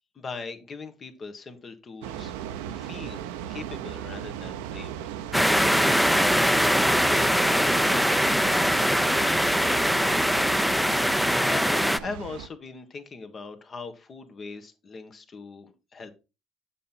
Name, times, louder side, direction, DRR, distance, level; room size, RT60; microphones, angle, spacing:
voice 1, 0.1-2.3 2.7-5.0 11.4-16.1, left 4 dB, 40° left, 1.5 m, -40 dB
sound 1, 2.0-12.5, right 10 dB, 90° right, 0.6 m, -37 dB
sound 2, 5.3-12.0, equal, ahead, 0.6 m, -22 dB
7.2 x 5.8 x 4.2 m
supercardioid pair, 65°, 0 cm